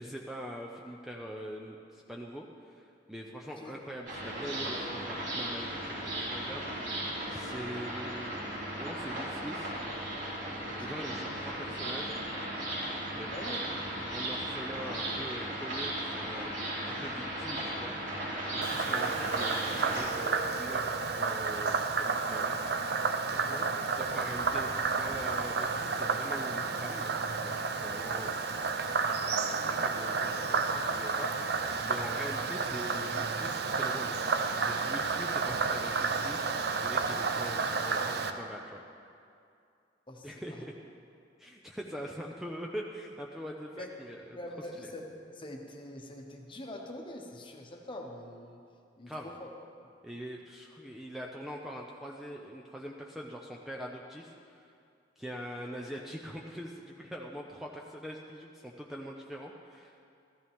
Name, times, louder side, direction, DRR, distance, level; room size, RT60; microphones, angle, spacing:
voice 1, 0.0-6.7 7.3-8.4 8.7-9.7 10.7-12.2 13.1-13.3 14.1-16.5 16.9-18.0 18.5-22.6 23.9-28.6 29.3-34.2 34.5-38.8 40.2-40.7 41.4-44.4 44.8-44.9 49.1-49.3 50.0-54.6 55.2-60.1, equal, ahead, -1 dB, 0.6 m, -43 dB
voice 2, 3.4-3.8 10.6-11.0 13.3-13.6 18.8-19.2 23.3-23.7 40.1-40.7 43.7-43.9 44.3-48.6 49.0-49.5, left 1 dB, 30° left, 2 dB, 1.2 m, -45 dB
sound 1, 4.1-20.0, right 1 dB, 80° right, 3.8 m, -36 dB
Frog, 18.6-38.3, right 4 dB, 60° right, 0.6 m, -31 dB
14.0 x 14.0 x 3.6 m, 2.4 s
head